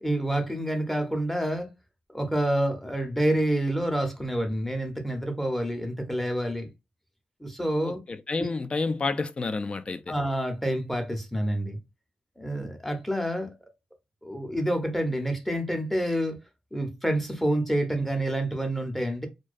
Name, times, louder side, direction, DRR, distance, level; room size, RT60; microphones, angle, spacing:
voice 1, 0.0-1.7 2.1-6.7 7.4-8.0 8.4-8.5 10.1-11.8 12.4-13.5 14.2-16.4 16.7-19.3, right 1 dB, 5° left, 0.7 m, -28 dB
voice 2, 7.8-10.1, left 3 dB, 35° left, 0.3 m, -30 dB
2.3 x 2.2 x 2.4 m
cardioid pair, 60°, 3 cm